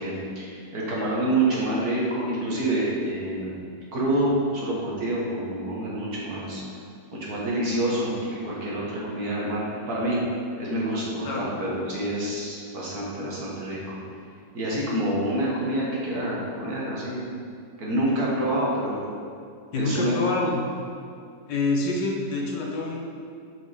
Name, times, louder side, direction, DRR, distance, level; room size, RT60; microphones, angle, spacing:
voice 1, 0.0-6.6 7.1-10.2 10.6-14.0 14.5-17.3 17.8-19.0 19.7-20.2, right 1 dB, 55° right, -5 dB, 2.0 m, -27 dB
voice 2, 19.7-20.6 21.5-23.0, left 3 dB, 70° left, -1 dB, 1.7 m, -26 dB
7.7 x 5.3 x 5.1 m, 2.3 s
omnidirectional pair, 2.0 m